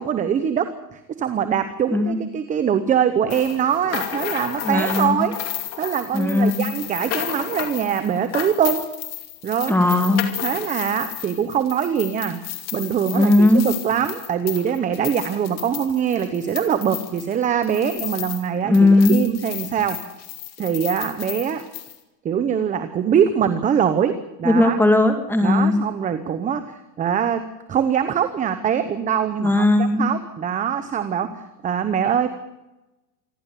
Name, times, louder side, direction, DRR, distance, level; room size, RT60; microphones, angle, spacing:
voice 1, 0.0-5.3 5.8-8.8 9.4-9.8 10.4-12.4 12.7-20.0 20.6-21.7 22.2-24.8 25.4-32.3, right 8 dB, 15° right, 10 dB, 1.0 m, -23 dB
sound 1, 3.3-18.5 18.7-22.0, left 12 dB, 30° left, 2.6 m, -33 dB
voice 2, 4.6-5.3 6.1-6.7 9.7-10.3 13.1-13.7 17.9-18.0 18.6-19.2 24.4-25.9 29.4-30.1, left 2 dB, 5° left, 6 dB, 2.1 m, -17 dB
27.0 x 12.0 x 9.2 m, 0.99 s
supercardioid pair, 140°, 49 cm